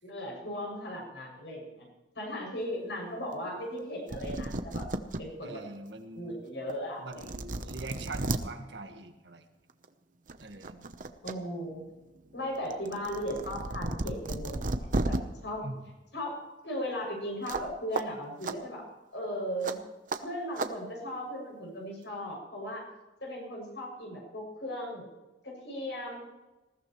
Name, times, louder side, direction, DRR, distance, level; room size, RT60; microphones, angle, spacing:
voice 1, 0.0-1.9 2.2-4.9 5.2-5.6 6.2-7.3 11.2-11.8 12.3-15.2 15.4-15.6 16.1-16.4 16.6-18.8 19.1-19.8 20.2-22.8 23.2-25.1 25.4-26.2, equal, 80° left, 0 dB, 6.8 m, -37 dB
sound 1, 3.8-3.9 4.1-5.2 5.8-5.9 6.7-6.8 7.1-8.4 9.7-9.9 10.3-11.3 11.7-15.2 17.5-17.7 17.9-18.0 18.4-18.6 19.6-19.8 20.1-20.2 20.6-20.7, right 2 dB, 45° right, 0.8 m, -33 dB
voice 2, 5.4-6.3 7.0-9.4 10.4-10.9 15.6-15.8, right 2 dB, 75° right, 5 dB, 1.6 m, -42 dB
20.5 x 15.0 x 3.2 m, 1.1 s
head